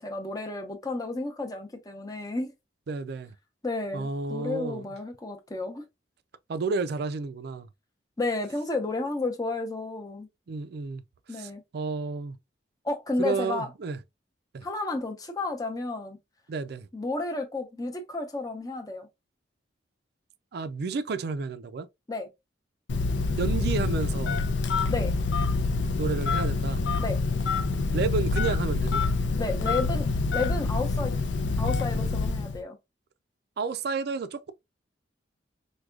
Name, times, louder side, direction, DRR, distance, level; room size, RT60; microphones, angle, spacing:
voice 1, 0.0-2.5 3.6-5.8 8.2-10.3 11.3-11.6 12.8-13.7 14.6-16.2 16.9-19.1 22.1-22.3 24.9-25.1 27.0-27.2 29.4-30.1 30.3-31.1 31.6-32.8, left 2 dB, 20° left, 0.7 m, -32 dB
voice 2, 2.9-3.3 3.9-4.9 6.5-7.7 10.5-11.0 11.3-12.4 13.2-14.0 14.5-14.7 16.5-16.9 20.5-21.9 23.4-24.5 26.0-26.8 27.9-29.0 33.6-34.5, right 4 dB, 60° right, 0.4 m, -31 dB
Telephone, 22.9-32.6, left 3 dB, 75° left, 0.5 m, -26 dB
4.7 x 2.2 x 2.4 m
head